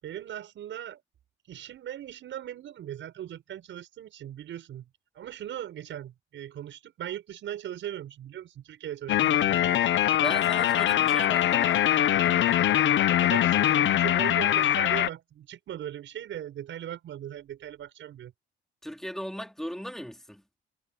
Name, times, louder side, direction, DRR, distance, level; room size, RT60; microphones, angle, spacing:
voice 1, 0.0-1.0 1.5-4.9 5.1-10.0 13.2-18.3, right 11 dB, 75° right, 7.7 m, -39 dB
sound 1, 9.1-15.1, left 12 dB, 70° left, 1.1 m, -23 dB
voice 2, 10.2-11.9 18.8-20.4, equal, ahead, 4.2 m, -37 dB
cardioid pair, 90°, 20 cm